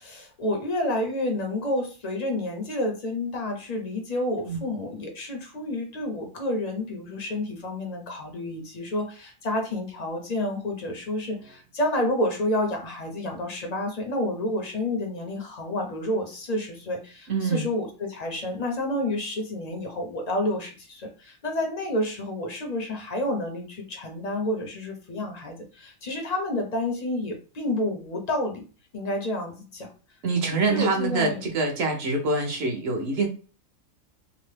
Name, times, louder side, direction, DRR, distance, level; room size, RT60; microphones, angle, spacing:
voice 1, 0.0-28.6 28.9-29.9 30.7-31.4, left 1 dB, 50° left, 2 dB, 0.5 m, -29 dB
voice 2, 17.3-17.7 30.2-33.3, right 3 dB, 55° right, 3 dB, 0.8 m, -25 dB
2.9 x 2.0 x 3.1 m, 0.36 s
omnidirectional pair, 1.5 m